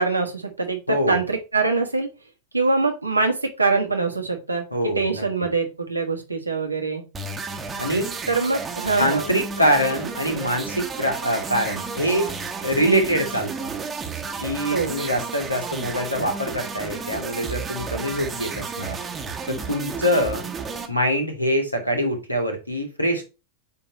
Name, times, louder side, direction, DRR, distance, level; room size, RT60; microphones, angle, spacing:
voice 1, 0.0-2.1 2.5-4.6 4.9-7.1 8.3-9.2 14.7-14.9, right 3 dB, 85° right, 3 dB, 1.2 m, -23 dB
voice 2, 0.9-1.2 4.7-5.2 7.8-8.1 9.0-12.3 12.6-13.5 14.4-19.0 19.5-20.5 20.9-23.2, equal, 85° left, 4 dB, 1.5 m, -24 dB
sound 1, 7.1-20.9, right 5 dB, 15° right, 1.0 m, -32 dB
8.6 x 3.0 x 4.0 m, 0.28 s
figure-of-eight pair, 90°, 0 cm